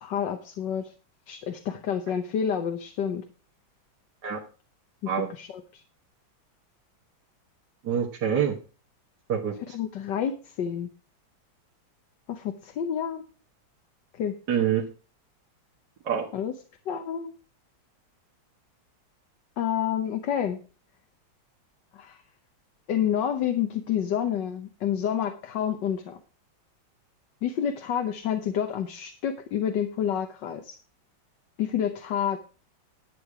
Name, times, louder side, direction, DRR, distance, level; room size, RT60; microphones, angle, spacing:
voice 1, 0.0-0.9 1.3-3.2 5.0-5.8 9.7-10.9 12.3-13.2 14.1-14.3 16.3-16.5 16.9-17.3 19.6-20.6 21.9-22.2 22.9-26.2 27.4-30.8 31.6-32.4, left 9 dB, 65° left, 6 dB, 1.6 m, -29 dB
voice 2, 7.8-8.6 9.3-9.8 14.5-14.8 16.0-16.3, right 8 dB, 60° right, -2 dB, 1.9 m, -26 dB
11.5 x 8.5 x 4.8 m, 0.37 s
omnidirectional pair, 2.1 m